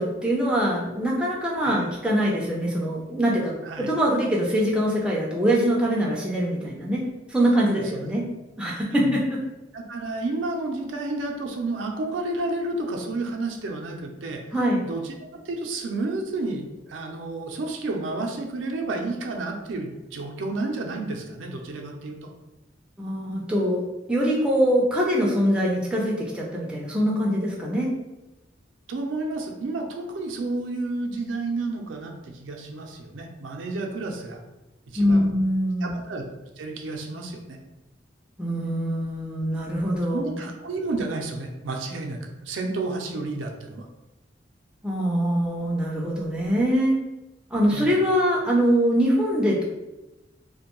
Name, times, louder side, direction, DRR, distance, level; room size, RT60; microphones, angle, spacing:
voice 1, 0.0-8.3 8.6-9.4 14.5-14.8 23.0-23.8 24.1-27.9 35.0-35.9 38.4-40.4 44.8-46.9 47.5-49.6, equal, 5° right, -4 dB, 0.4 m, -23 dB
voice 2, 7.6-8.1 9.0-9.2 9.7-14.4 14.8-22.3 28.9-34.4 34.9-35.3 35.8-36.2 36.6-37.6 40.1-43.9 47.7-47.9, right 2 dB, 90° right, 2 dB, 0.4 m, -31 dB
2.5 x 2.2 x 2.9 m, 1.0 s
head